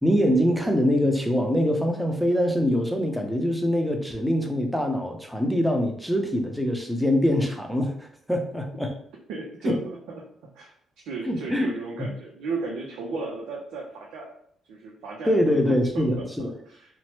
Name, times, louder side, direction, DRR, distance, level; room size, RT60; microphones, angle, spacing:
voice 1, 0.0-8.9 9.6-9.8 11.2-11.7 12.0-12.1 15.2-16.5, equal, ahead, 3 dB, 0.6 m, -24 dB
voice 2, 9.3-10.2 10.5-10.7 11.0-14.3 14.7-15.5 15.9-16.9, right 4 dB, 90° right, -3 dB, 0.5 m, -35 dB
3.0 x 2.1 x 2.9 m, 0.65 s
cardioid pair, 90°, 0 cm